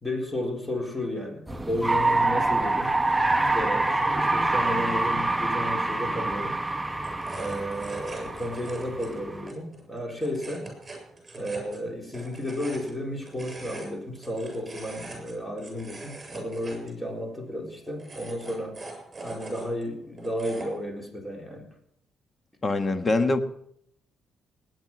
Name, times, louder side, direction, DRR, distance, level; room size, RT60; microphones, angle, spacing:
voice 1, 0.0-3.0 3.5-6.6 7.3-10.7 11.3-18.8 19.2-21.7, equal, 10° left, 1 dB, 4.0 m, -33 dB
sound 1, 1.5-9.5, right 2 dB, 10° right, 0.9 m, -26 dB
sound 2, 6.3-20.8, right 2 dB, 25° right, 7.2 m, -43 dB
voice 2, 22.6-23.4, left 2 dB, 30° left, 8 dB, 1.5 m, -23 dB
19.0 x 9.7 x 6.0 m, 0.73 s
cardioid pair, 90°, 0 cm